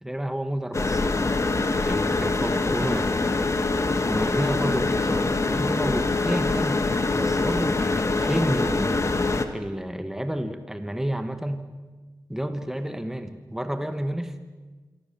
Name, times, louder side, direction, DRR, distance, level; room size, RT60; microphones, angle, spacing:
voice 1, 0.0-3.1 4.1-6.8 7.1-11.6 12.3-14.3, right 1 dB, 5° right, 8 dB, 2.2 m, -30 dB
sound 1, 0.7-9.5, left 3 dB, 40° left, 2.3 m, -24 dB
26.5 x 24.5 x 7.5 m, 1.3 s
cardioid pair, 60°, 8 cm